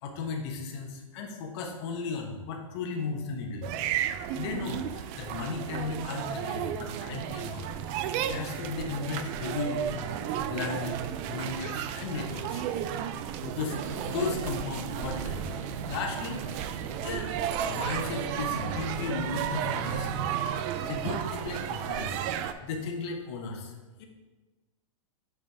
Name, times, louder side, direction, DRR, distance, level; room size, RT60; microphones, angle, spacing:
voice 1, 0.0-3.7 4.4-7.6 8.2-12.6 13.4-15.5 15.9-16.7 17.0-17.3 17.7-20.2 20.8-24.1, left 4 dB, 50° left, 2 dB, 1.2 m, -35 dB
sound 1, 3.6-22.5, right 9 dB, 40° right, 0.4 m, -33 dB
sound 2, 13.7-20.0, right 5 dB, 75° right, 0.9 m, -41 dB
6.6 x 5.1 x 3.5 m, 1.2 s
hypercardioid pair, 125°, 17 cm